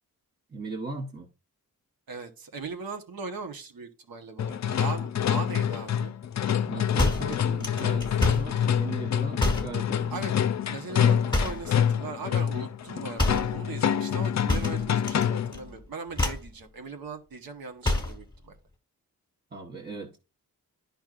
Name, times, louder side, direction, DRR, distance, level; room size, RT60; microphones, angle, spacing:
voice 1, 0.5-1.3 6.7-10.1 19.5-20.2, right 2 dB, 30° right, 1.0 m, -37 dB
voice 2, 2.1-6.1 10.1-10.3 10.7-18.6, right 4 dB, 90° right, 1.2 m, -39 dB
sound 1, 4.4-15.6, left 9 dB, 55° left, 0.4 m, -26 dB
sound 2, 7.0-8.5 9.4-9.8 11.3-11.7 13.2-13.5 14.5-15.3 15.5-15.8 16.1-16.5 17.8-18.2, left 2 dB, 15° left, 1.3 m, -27 dB
10.5 x 5.3 x 2.5 m
wide cardioid pair, 105°, 34 cm